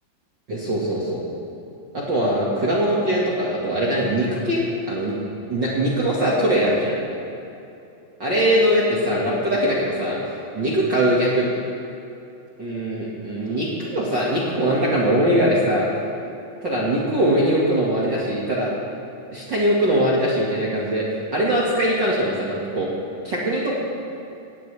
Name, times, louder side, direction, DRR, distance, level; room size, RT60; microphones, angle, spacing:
voice 1, 0.5-1.2 1.9-5.1 5.5-7.0 8.2-10.2 10.5-11.6 12.6-15.9 16.6-18.7 19.3-21.1 21.3-22.9 23.2-23.9, right 1 dB, 45° right, -6 dB, 1.5 m, -21 dB
18.5 x 17.0 x 3.4 m, 2.8 s
omnidirectional pair, 4.8 m